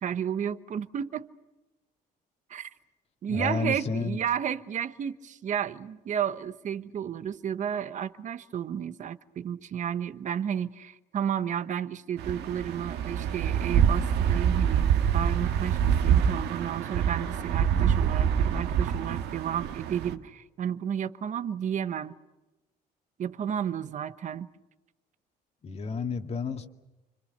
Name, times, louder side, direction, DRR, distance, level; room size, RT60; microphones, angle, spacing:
voice 1, 0.0-1.3 2.5-2.7 3.2-14.9 15.1-22.1 23.2-24.5, right 9 dB, 45° right, 1.2 m, -32 dB
voice 2, 3.3-4.2 25.6-26.7, left 4 dB, 40° left, 2.2 m, -31 dB
sound 1, 12.2-20.2, right 8 dB, 80° right, 1.8 m, -26 dB
29.5 x 25.5 x 6.8 m
cardioid pair, 110°, 17 cm